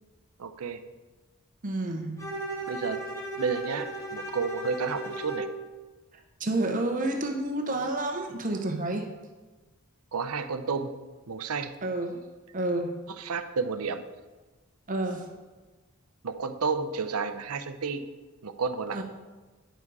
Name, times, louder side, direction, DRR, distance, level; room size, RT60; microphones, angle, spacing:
voice 1, 0.4-0.8 2.7-3.0 3.4-5.5 10.1-10.9 11.3-11.7 13.1-14.0 16.2-18.0 18.4-19.0, right 5 dB, 80° right, 10 dB, 0.7 m, -31 dB
voice 2, 1.6-2.4 6.4-9.0 11.8-12.2 12.5-13.0 14.9-15.2 18.9-19.0, right 2 dB, 35° right, 4 dB, 0.8 m, -29 dB
Bowed string instrument, 2.2-5.6, right 2 dB, 15° left, 1.8 m, -36 dB
10.0 x 7.5 x 4.8 m, 1.3 s
head